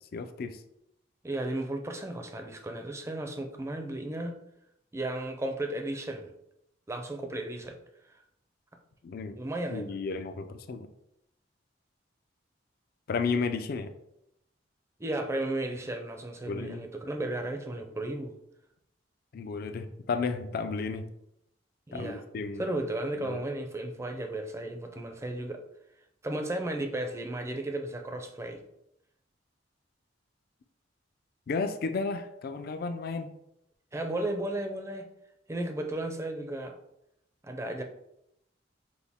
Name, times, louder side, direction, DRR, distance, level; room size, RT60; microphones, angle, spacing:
voice 1, 0.1-0.6 9.0-9.4 9.7-10.9 13.1-13.9 16.5-16.8 19.3-21.1 21.9-22.6 23.2-23.4 31.5-33.3, left 4 dB, 55° left, 9 dB, 0.4 m, -33 dB
voice 2, 1.2-4.3 4.9-6.3 6.9-7.8 9.4-9.9 15.0-18.3 21.9-22.2 22.6-25.6 26.2-28.6 33.9-35.0 35.5-36.8 37.4-37.8, right 1 dB, 15° right, 4 dB, 0.5 m, -34 dB
6.0 x 2.1 x 3.5 m, 0.81 s
head